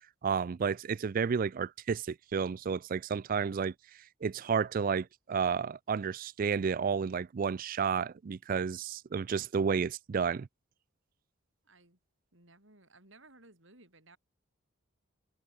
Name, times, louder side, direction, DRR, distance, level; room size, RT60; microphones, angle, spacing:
voice 1, 0.2-3.7 4.2-10.5, right 6 dB, 40° right, 0.3 m, -31 dB
voice 2, 11.6-12.0 12.3-14.2, right 2 dB, 60° right, 7.8 m, -59 dB
head